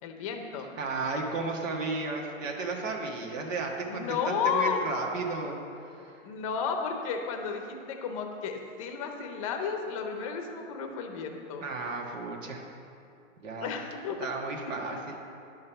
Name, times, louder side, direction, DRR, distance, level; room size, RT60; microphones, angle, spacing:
voice 1, 0.0-0.7 3.9-4.8 6.2-11.6 13.6-14.3 14.8-15.0, left 6 dB, 25° left, 4 dB, 0.8 m, -33 dB
voice 2, 0.8-5.6 5.9-6.2 11.6-12.6 13.4-13.7 14.2-15.1, right 3 dB, 70° right, 0 dB, 1.6 m, -34 dB
10.5 x 5.4 x 7.0 m, 2.6 s
hypercardioid pair, 165°, 40 cm